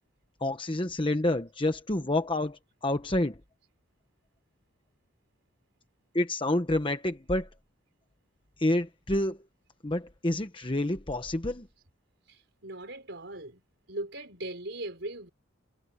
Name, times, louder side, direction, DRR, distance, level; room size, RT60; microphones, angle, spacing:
voice 1, 0.4-3.4 6.1-7.5 8.6-9.4 9.8-11.7, left 1 dB, 25° left, 1.0 m, -28 dB
voice 2, 12.3-13.6 13.9-15.3, right 1 dB, 60° right, 5.0 m, -39 dB
head